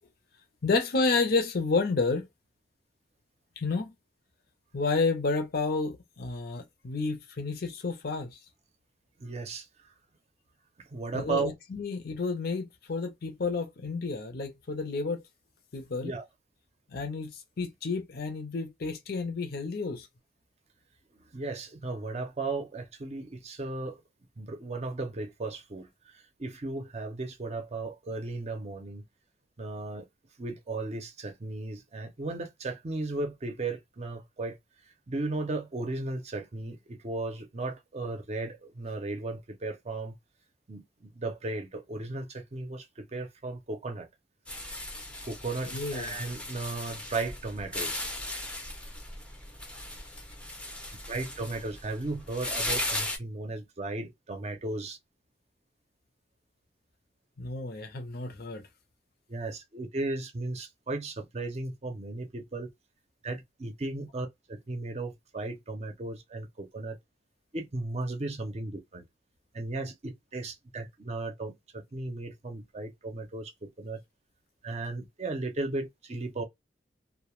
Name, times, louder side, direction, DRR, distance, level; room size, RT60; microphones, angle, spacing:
voice 1, 0.6-2.3 3.6-3.9 4.7-8.4 11.1-15.2 15.7-16.1 16.9-20.1 45.7-46.2 57.4-58.7, left 4 dB, 60° left, 0.6 m, -30 dB
voice 2, 9.2-9.7 10.9-11.5 16.0-16.3 21.1-24.0 24.4-29.0 29.6-30.1 30.4-34.6 35.1-40.2 40.7-44.1 45.2-48.0 51.1-55.0 59.3-62.7 63.2-67.0 67.5-69.0 69.5-74.0 74.6-76.4, right 2 dB, 35° right, 0.6 m, -35 dB
sound 1, 44.5-53.2, left 1 dB, 5° left, 0.5 m, -37 dB
2.2 x 2.1 x 3.0 m
head